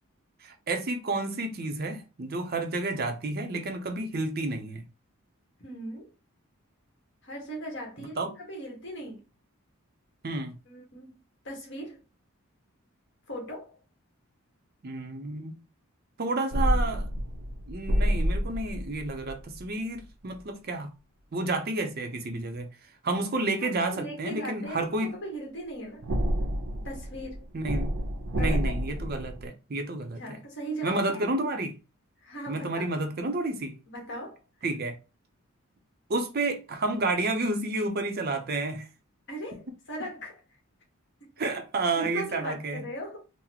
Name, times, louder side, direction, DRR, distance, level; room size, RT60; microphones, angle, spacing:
voice 1, 0.4-4.8 8.2-8.3 10.2-10.5 14.8-15.5 16.2-17.0 17.7-20.9 21.3-22.7 23.0-25.1 27.5-27.9 28.4-30.4 30.8-31.7 32.5-33.7 34.6-35.0 36.1-38.9 41.4-42.8, right 2 dB, 45° right, 0.5 m, -30 dB
voice 2, 5.6-6.1 7.2-9.2 10.7-11.1 11.4-12.0 13.3-13.8 23.6-26.1 26.8-27.4 28.3-28.8 30.2-31.2 32.2-32.9 33.9-34.4 39.3-40.4 42.0-43.2, right 1 dB, 55° left, 1.4 m, -38 dB
sound 1, 16.5-19.7 20.0-20.1 26.0-29.5, equal, 85° right, 0.7 m, -29 dB
3.9 x 2.0 x 2.8 m
head